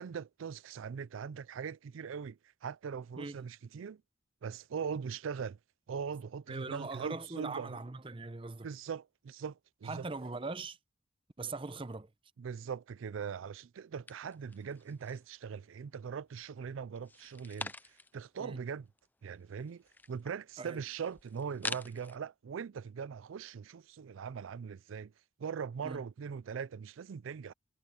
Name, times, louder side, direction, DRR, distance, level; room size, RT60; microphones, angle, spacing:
voice 1, 0.0-4.0 4.4-5.6 5.9-7.8 8.6-10.1 12.4-18.9 19.2-25.1 25.4-27.5, right 6 dB, 85° right, 0.4 m, -41 dB
voice 2, 6.5-8.7 9.8-10.8 11.4-12.1 18.4-18.6 20.6-20.8 25.8-26.0, right 3 dB, 25° right, 0.7 m, -41 dB
sound 1, 14.1-15.4 15.8-16.4 17.0-18.3 18.6-18.7 18.9-22.2, left 3 dB, 10° left, 0.3 m, -45 dB
head